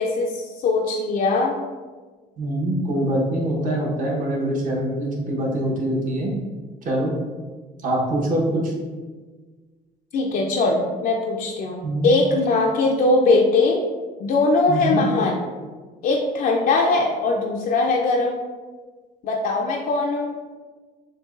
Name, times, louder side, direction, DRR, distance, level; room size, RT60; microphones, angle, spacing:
voice 1, 0.0-1.6 10.1-13.8 14.2-15.5 16.0-18.4 19.2-20.4, left 3 dB, 55° left, 0 dB, 0.5 m, -21 dB
voice 2, 2.4-6.3 6.8-7.1 7.8-8.7 11.8-12.1 14.7-15.0, right 1 dB, 50° right, -2 dB, 1.1 m, -24 dB
6.5 x 2.2 x 2.5 m, 1.4 s
cardioid pair, 110°, 17 cm